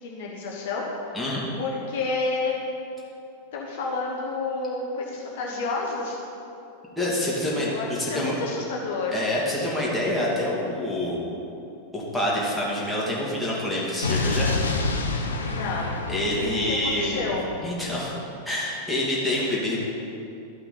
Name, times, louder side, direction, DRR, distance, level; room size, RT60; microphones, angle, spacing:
voice 1, 0.0-1.1 1.6-2.6 3.5-6.2 7.5-9.1 15.5-17.5, left 3 dB, 55° left, -2 dB, 1.0 m, -30 dB
voice 2, 7.0-8.4 9.1-11.2 11.9-14.6 16.1-17.3 17.6-18.1 18.5-19.8, left 1 dB, 5° left, -6 dB, 2.1 m, -27 dB
Explosion, 14.0-18.1, left 3 dB, 75° left, 0.7 m, -28 dB
12.5 x 5.6 x 3.9 m, 2.7 s
figure-of-eight pair, 90°, 0 cm